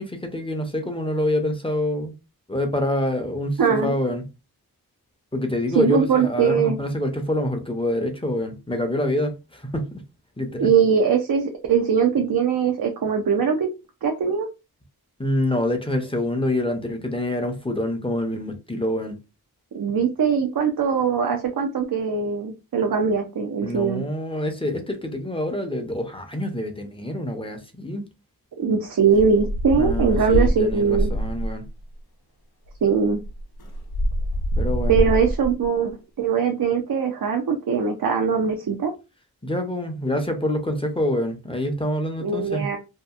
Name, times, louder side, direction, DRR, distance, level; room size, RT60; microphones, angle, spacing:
voice 1, 0.0-2.1 2.5-4.2 5.3-10.0 10.4-10.7 15.2-19.2 23.6-28.0 29.7-31.6 34.6-35.1 39.4-42.7, left 1 dB, 15° left, 0.6 m, -26 dB
voice 2, 3.6-3.9 5.8-6.8 10.6-13.7 14.0-14.5 19.7-24.0 28.6-31.1 32.8-33.2 34.9-35.9 36.2-38.9 42.2-42.8, right 6 dB, 65° right, 0.6 m, -21 dB
sound 1, 29.1-31.7 32.7-32.8 33.0-35.7, equal, 75° left, 0.6 m, -25 dB
2.7 x 2.5 x 2.3 m
wide cardioid pair, 80°, 38 cm